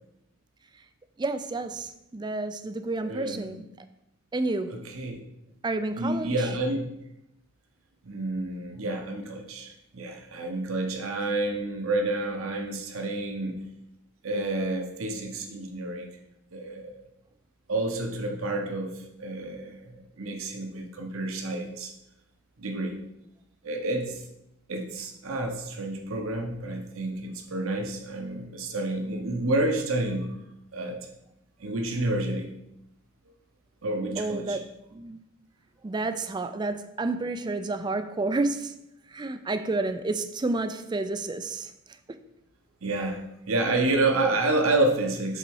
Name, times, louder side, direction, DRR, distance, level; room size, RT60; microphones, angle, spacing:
voice 1, 1.2-3.6 4.3-4.7 5.6-6.3 34.2-34.6 34.9-35.2 35.8-38.7 39.1-41.7 42.1-42.2, right 2 dB, 20° right, 10 dB, 0.4 m, -30 dB
voice 2, 3.0-3.5 4.7-5.2 6.0-6.9 8.0-13.6 14.2-16.1 16.5-16.9 17.7-21.9 22.6-23.0 23.6-24.2 24.7-30.3 30.7-31.0 31.6-32.5 33.8-34.6 42.8-43.2 43.5-45.4, right 2 dB, 70° right, 3 dB, 0.9 m, -29 dB
6.8 x 4.1 x 4.7 m, 0.84 s
head